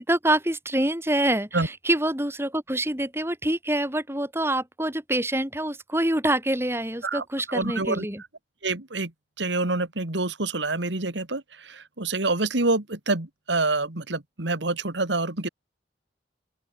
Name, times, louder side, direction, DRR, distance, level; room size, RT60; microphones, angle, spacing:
voice 1, 0.0-8.2, right 1 dB, 15° right, 4.8 m, -26 dB
voice 2, 7.0-8.1 8.6-9.1 9.4-15.5, right 2 dB, 90° right, 2.4 m, -27 dB
open air
head